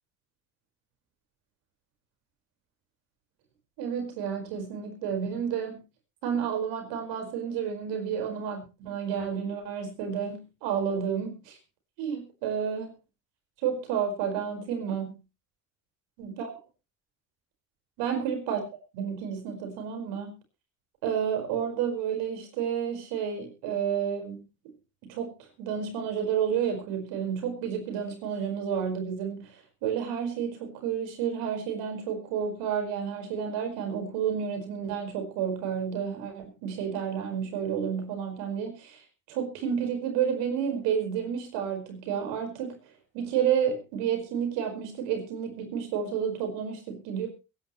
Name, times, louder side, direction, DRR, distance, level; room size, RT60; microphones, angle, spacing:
voice 1, 3.8-5.8 6.2-11.6 12.0-12.9 13.6-15.1 16.2-16.5 18.0-18.7 18.9-20.3 21.0-24.7 25.0-42.8 43.1-47.3, right 8 dB, 85° right, 4 dB, 5.1 m, -31 dB
23.0 x 11.0 x 3.1 m, 0.30 s
supercardioid pair, 65°, 41 cm